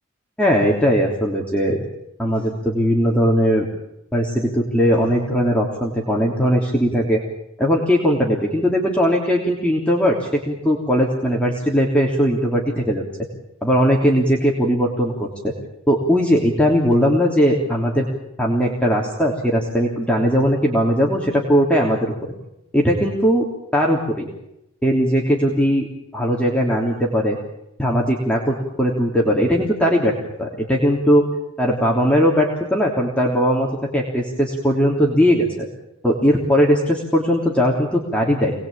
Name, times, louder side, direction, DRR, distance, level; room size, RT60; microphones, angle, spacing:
voice 1, 0.4-1.9 2.2-3.7 4.1-7.2 7.6-13.0 13.6-15.5 15.9-18.0 18.4-22.1 22.7-23.4 23.7-24.3 24.8-25.9 26.1-27.4 27.8-31.2 31.6-33.7 33.9-35.7 36.0-38.5, equal, 5° left, -2 dB, 3.3 m, -19 dB
28.0 x 20.5 x 8.9 m, 0.86 s
head